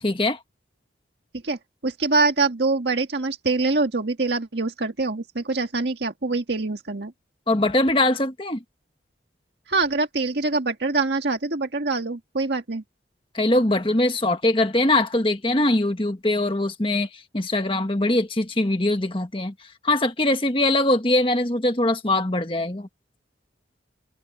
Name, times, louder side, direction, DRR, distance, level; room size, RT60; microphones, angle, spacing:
voice 1, 0.0-0.4 7.5-8.6 13.3-19.5 19.8-22.9, left 1 dB, 30° left, 1.5 m, -22 dB
voice 2, 1.4-7.1 9.7-12.8, right 3 dB, 70° right, 1.7 m, -24 dB
head